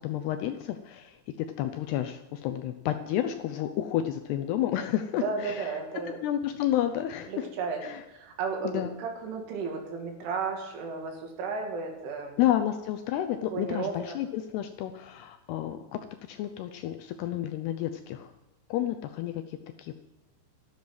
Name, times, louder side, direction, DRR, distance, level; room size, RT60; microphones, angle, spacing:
voice 1, 0.0-5.7 6.2-7.5 7.8-8.0 8.6-9.0 12.4-16.0 16.3-18.3 18.7-19.9, left 12 dB, 80° left, 7 dB, 2.4 m, -30 dB
voice 2, 5.2-6.2 7.3-7.8 8.1-12.4 13.5-14.2, right 5 dB, 90° right, 2 dB, 4.9 m, -34 dB
13.5 x 13.0 x 6.1 m, 1.0 s
omnidirectional pair, 5.4 m